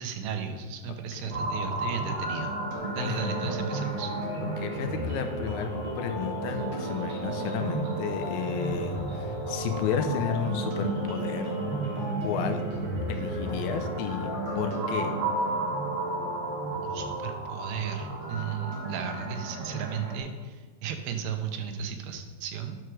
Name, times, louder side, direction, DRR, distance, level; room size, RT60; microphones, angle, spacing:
voice 1, 0.0-2.5 2.9-4.1 16.8-22.8, right 7 dB, 85° right, 6 dB, 2.8 m, -35 dB
voice 2, 0.9-1.5 3.0-3.5 4.6-11.6 12.2-12.6 13.1-15.2, left 7 dB, 90° left, 6 dB, 2.6 m, -33 dB
sound 1, 1.3-20.2, right 2 dB, 55° right, 1.6 m, -33 dB
sound 2, 2.7-17.2, equal, 65° left, 2.5 m, -37 dB
10.5 x 4.8 x 6.1 m, 1.4 s
omnidirectional pair, 4.3 m